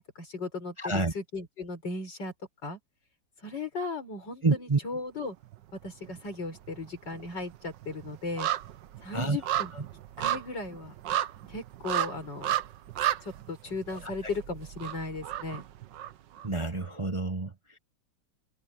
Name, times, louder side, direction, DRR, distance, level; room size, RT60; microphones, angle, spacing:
voice 1, 0.0-2.3 2.6-2.8 3.4-5.4 5.8-8.5 9.0-9.7 10.2-10.9 11.5-12.5 13.2-15.6, left 3 dB, 85° left, 6.2 m, -36 dB
voice 2, 0.8-1.1 4.4-4.8 9.1-9.4 16.4-17.5, right 3 dB, 20° right, 0.9 m, -28 dB
sound 1, 5.4-6.2 6.5-16.5 16.8-16.9, right 12 dB, 85° right, 1.6 m, -34 dB
omnidirectional pair, 1.9 m